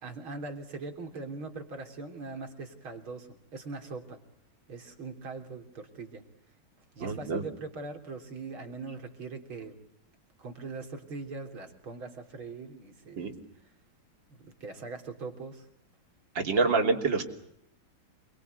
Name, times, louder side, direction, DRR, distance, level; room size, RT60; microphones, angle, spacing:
voice 1, 0.0-4.2 4.7-6.2 7.0-9.8 10.4-13.4 14.3-15.7, right 3 dB, 85° right, 5 dB, 4.2 m, -41 dB
voice 2, 7.0-7.4 13.2-13.3 16.4-17.2, right 4 dB, 65° right, 4 dB, 3.8 m, -26 dB
28.5 x 21.5 x 8.1 m, 0.76 s
omnidirectional pair, 2.2 m